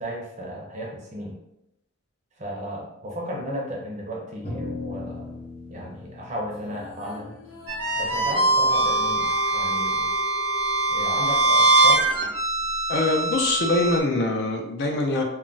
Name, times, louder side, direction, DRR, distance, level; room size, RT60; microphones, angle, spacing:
voice 1, 0.0-1.4 2.4-5.4 5.7-7.3 8.0-10.1 10.9-12.1, equal, 35° right, -1 dB, 0.6 m, -34 dB
sound 1, 4.4-9.0, left 2 dB, 30° left, 1.0 m, -38 dB
sound 2, 6.5-12.0, left 3 dB, 75° left, 0.8 m, -43 dB
sound 3, 7.7-14.0, right 2 dB, 90° right, 0.6 m, -22 dB
voice 2, 12.9-15.2, left 2 dB, 50° left, 2 dB, 0.4 m, -23 dB
2.3 x 2.0 x 3.8 m, 0.84 s
head